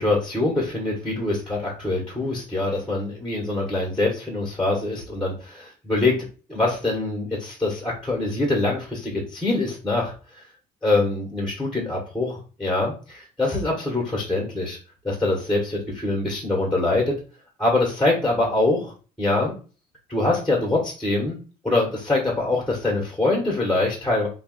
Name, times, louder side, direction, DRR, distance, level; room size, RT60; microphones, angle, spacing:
voice 1, 0.0-6.2 6.5-10.4 10.8-14.8 15.0-17.1 17.6-18.9 19.2-19.5 20.1-21.4 21.6-24.3, left 2 dB, 5° left, -2 dB, 1.3 m, -24 dB
5.5 x 2.4 x 2.4 m, 0.36 s
cardioid pair, 110°, 17 cm